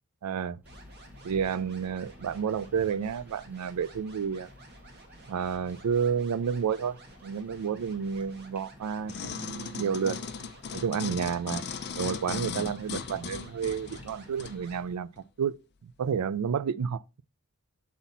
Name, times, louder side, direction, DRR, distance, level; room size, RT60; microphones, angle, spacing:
voice 1, 0.2-0.6 1.2-4.5 5.3-10.2 10.7-11.6 12.0-15.1 15.4-15.6 15.8-17.2, right 7 dB, 85° right, 0.4 m, -30 dB
sound 1, 0.6-15.0, left 1 dB, 10° right, 1.2 m, -54 dB
sound 2, 0.7-14.8, right 2 dB, 50° right, 1.4 m, -54 dB
sound 3, 9.1-14.6 15.2-15.3, left 5 dB, 50° left, 0.5 m, -37 dB
7.0 x 4.1 x 4.0 m
head